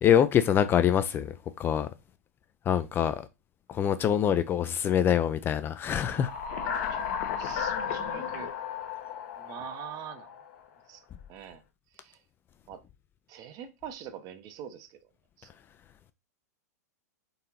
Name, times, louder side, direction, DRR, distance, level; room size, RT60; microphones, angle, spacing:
voice 1, 0.0-1.9 2.7-3.3 3.7-6.3, left 9 dB, 25° left, 0.3 m, -25 dB
sound 1, 5.9-10.6, left 7 dB, 50° left, 0.8 m, -34 dB
voice 2, 7.4-8.5 9.4-10.3 10.9-11.0 11.3-11.6 11.9-12.2 12.7-12.8 13.3-15.0 15.4-15.5, right 9 dB, 40° right, 0.7 m, -43 dB
4.0 x 3.6 x 2.8 m
hypercardioid pair, 105°, 9 cm